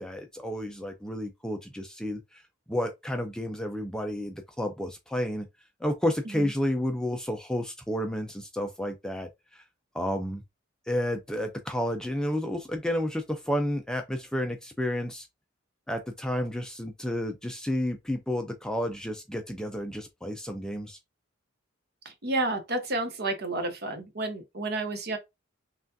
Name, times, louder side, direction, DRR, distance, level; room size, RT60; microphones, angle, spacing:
voice 1, 0.0-2.2 2.7-5.5 5.8-9.3 9.9-10.4 10.9-15.3 15.9-21.0, equal, 5° left, 0.4 m, -31 dB
voice 2, 22.0-25.2, right 2 dB, 50° right, 1.0 m, -31 dB
5.7 x 2.4 x 2.6 m
head